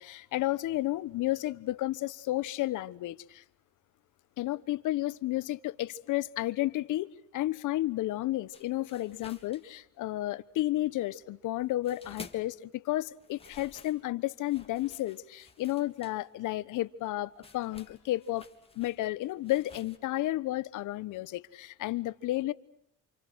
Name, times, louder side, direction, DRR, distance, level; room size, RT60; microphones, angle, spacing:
voice 1, 0.0-3.4 4.4-18.4 18.8-22.5, left 16 dB, 90° left, 1.2 m, -32 dB
sound 1, 8.5-10.3 10.6-12.6 13.0-20.0, left 3 dB, 20° left, 3.5 m, -53 dB
28.5 x 28.0 x 6.4 m
cardioid pair, 90°, 30 cm